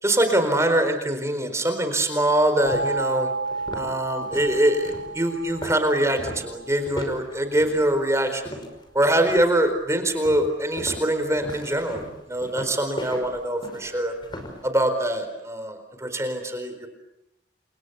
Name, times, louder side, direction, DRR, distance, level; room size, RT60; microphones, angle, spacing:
voice 1, 0.0-3.3 3.7-8.5 8.9-14.1 14.6-16.9, right 1 dB, 15° right, 8 dB, 4.3 m, -23 dB
sound 1, 2.3-2.4 2.9-3.0 3.4-8.9 9.3-9.7 10.2-14.6, equal, 25° left, 5.3 m, -37 dB
sound 2, 2.7-7.4, right 3 dB, 80° left, 6.7 m, -32 dB
30.0 x 28.0 x 7.1 m, 0.86 s
head